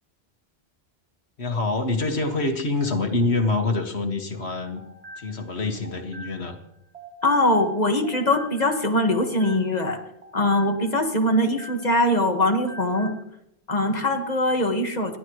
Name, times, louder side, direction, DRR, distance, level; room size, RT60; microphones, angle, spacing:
voice 1, 1.4-4.8 5.2-6.6, left 3 dB, 80° left, 4 dB, 2.0 m, -25 dB
sound 1, 4.5-7.8 8.0-12.1 12.4-13.2, right 1 dB, 85° right, 2.5 m, -44 dB
voice 2, 7.2-10.0 10.3-13.1 13.7-15.2, left 1 dB, 40° left, 4 dB, 1.8 m, -22 dB
29.5 x 12.0 x 3.1 m, 0.80 s
omnidirectional pair, 1.1 m